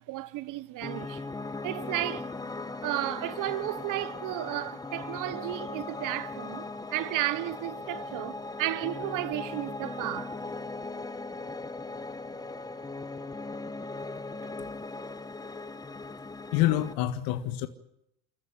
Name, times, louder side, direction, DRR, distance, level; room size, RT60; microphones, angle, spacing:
voice 1, 0.1-1.2 1.6-2.3 2.8-10.4, right 15 dB, 50° right, 1.2 m, -33 dB
Piano, 0.8-16.9, left 3 dB, 10° left, 1.1 m, -39 dB
voice 2, 16.5-17.7, left 14 dB, 60° left, 1.8 m, -26 dB
28.5 x 14.5 x 8.6 m
hypercardioid pair, 95°, 40 cm